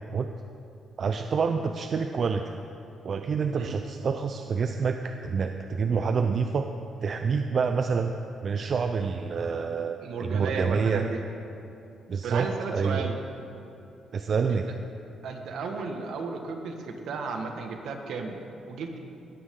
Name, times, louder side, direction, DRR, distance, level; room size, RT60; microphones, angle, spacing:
voice 1, 1.0-2.4 3.0-6.7 7.0-8.1 8.4-11.1 12.1-13.1 14.1-14.7, right 5 dB, 50° right, 6 dB, 0.6 m, -27 dB
voice 2, 10.0-11.2 12.2-13.2 14.5-14.8 15.2-18.4 18.6-19.0, right 4 dB, 75° right, 4 dB, 1.6 m, -34 dB
19.0 x 14.5 x 3.8 m, 2.8 s
cardioid pair, 90°, 0 cm